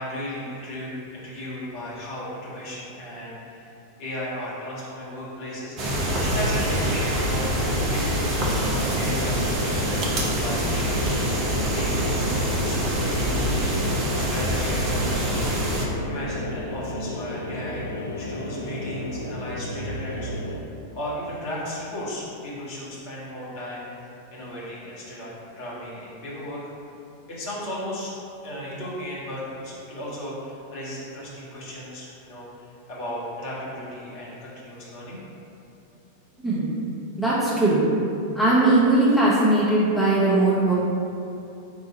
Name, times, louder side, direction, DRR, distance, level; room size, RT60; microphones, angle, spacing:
voice 1, 0.0-3.7 4.0-5.8 6.1-8.3 8.7-11.1 11.7-15.6 16.0-17.9 18.2-20.3 20.9-25.3 25.6-26.6 27.3-28.2 28.4-35.2, equal, 45° left, -8 dB, 1.4 m, -35 dB
sound 1, 5.8-15.9, equal, 35° right, 0.7 m, -25 dB
sound 2, 6.4-20.6, left 1 dB, 75° left, 0.4 m, -33 dB
voice 2, 37.2-37.8 38.3-40.7, right 2 dB, ahead, -11 dB, 1.1 m, -19 dB
4.7 x 2.6 x 4.1 m, 2.7 s
figure-of-eight pair, 90°, 0 cm